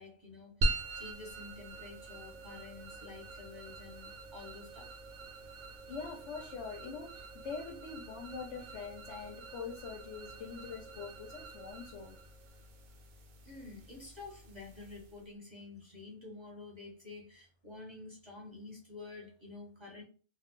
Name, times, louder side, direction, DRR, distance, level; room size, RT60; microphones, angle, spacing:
voice 1, 0.0-4.9 13.4-20.0, left 3 dB, 25° right, 0.8 m, -49 dB
sound 1, 0.6-15.3, right 2 dB, 70° right, 0.9 m, -42 dB
voice 2, 5.9-12.2, left 5 dB, 70° left, 0.8 m, -44 dB
2.3 x 2.2 x 3.6 m
omnidirectional pair, 1.4 m